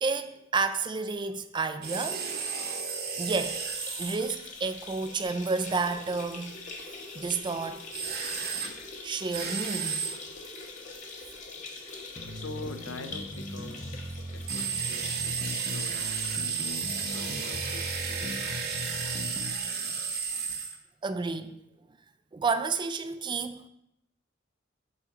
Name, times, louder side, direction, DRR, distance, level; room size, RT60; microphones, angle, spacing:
voice 1, 0.0-2.3 3.2-3.6 4.0-6.5 7.1-7.9 9.0-10.1 21.0-21.6 22.3-23.6, right 4 dB, 25° right, 0.4 m, -30 dB
sound 1, 1.8-4.2 7.9-8.7 9.3-10.2 14.5-20.8, right 6 dB, 50° right, 1.0 m, -33 dB
sound 2, 3.3-18.7 19.0-19.1 19.4-19.5 20.5-20.6, left 3 dB, 40° left, 1.1 m, -44 dB
sound 3, 12.1-19.5, left 1 dB, 10° left, 0.8 m, -39 dB
voice 2, 12.3-14.1 14.3-18.6, left 3 dB, 75° left, 0.7 m, -45 dB
7.3 x 3.9 x 5.8 m
head